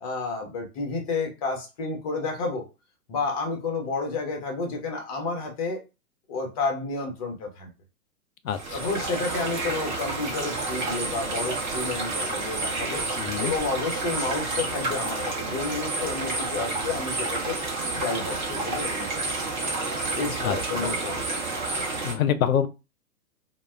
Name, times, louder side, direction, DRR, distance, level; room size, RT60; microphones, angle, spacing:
voice 1, 0.0-2.7 3.1-5.8 6.3-7.7 8.7-13.0 13.4-17.6 18.0-19.1 20.2-21.3, left 3 dB, 25° left, 0.6 m, -30 dB
voice 2, 8.4-8.8 13.2-13.5 20.4-20.9 22.0-22.7, left 9 dB, 65° left, 0.5 m, -26 dB
sound 1, 8.5-22.1, right 3 dB, 30° right, 0.8 m, -30 dB
2.1 x 2.1 x 3.3 m
figure-of-eight pair, 115°, 44 cm